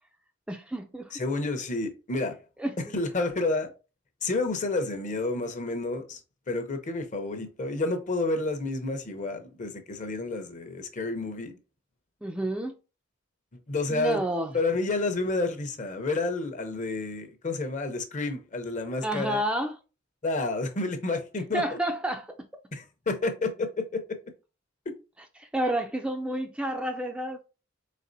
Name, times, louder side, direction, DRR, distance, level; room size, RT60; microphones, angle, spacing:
voice 1, 0.5-1.1 2.6-2.7 12.2-12.7 13.9-14.5 19.0-19.8 21.5-22.5 25.4-27.4, right 1 dB, 5° right, 0.3 m, -30 dB
voice 2, 1.1-2.4 2.9-3.7 4.2-6.2 6.5-11.6 13.7-14.2 14.5-19.4 20.2-21.8 22.7-24.2, left 3 dB, 40° left, 0.7 m, -30 dB
4.1 x 3.7 x 2.6 m
head